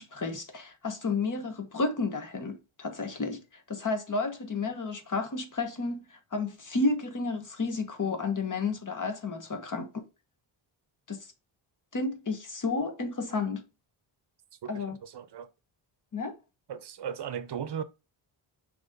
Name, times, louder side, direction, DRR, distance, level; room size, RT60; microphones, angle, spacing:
voice 1, 0.0-9.9 11.1-11.3 11.9-13.6 14.7-15.0 16.1-16.3, left 3 dB, 40° left, 1.2 m, -32 dB
voice 2, 14.6-15.5 16.7-17.8, right 8 dB, 55° right, 0.7 m, -37 dB
6.0 x 3.1 x 5.2 m
wide cardioid pair, 130°, 49 cm